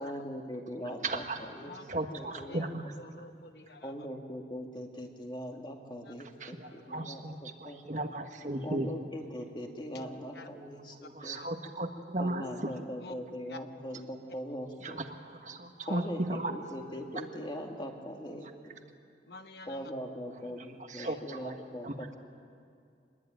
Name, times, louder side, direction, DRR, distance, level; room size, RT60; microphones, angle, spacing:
voice 1, 0.0-1.7 2.1-2.8 3.8-7.8 8.6-11.4 12.2-15.0 15.9-18.8 19.7-22.2, equal, 25° left, 2 dB, 2.3 m, -41 dB
voice 2, 1.0-1.4 1.9-2.9 6.4-8.9 10.6-10.7 11.1-12.8 14.8-16.5 20.9-21.9, right 2 dB, 40° right, 5 dB, 1.5 m, -36 dB
voice 3, 2.3-2.7 3.0-3.9 6.0-6.1 6.6-7.0 9.9-10.0 10.3-10.5 11.0-11.5 13.0-13.1 13.5-13.6 15.9-16.1 19.3-19.9 21.0-21.2, left 3 dB, 60° left, 7 dB, 1.1 m, -49 dB
26.0 x 21.0 x 9.3 m, 2.4 s
head